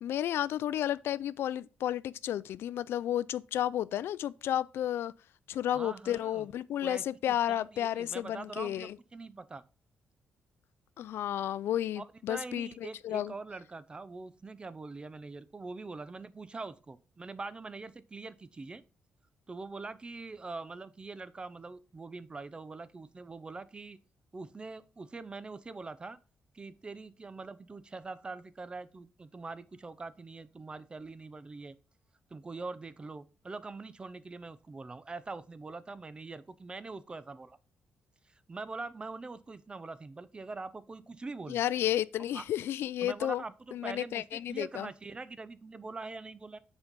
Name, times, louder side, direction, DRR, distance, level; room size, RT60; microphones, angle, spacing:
voice 1, 0.0-5.1 5.5-8.9 11.0-12.7 13.0-13.3 41.5-43.4 43.7-44.9, left 11 dB, 80° left, 0.3 m, -32 dB
voice 2, 5.7-6.5 6.8-9.6 12.0-18.8 19.5-24.0 24.3-26.2 26.5-31.8 32.3-37.6 38.3-41.6 42.3-42.4 43.0-46.6, right 3 dB, 25° right, 0.6 m, -43 dB
7.1 x 4.4 x 5.2 m
cardioid pair, 110°, 4 cm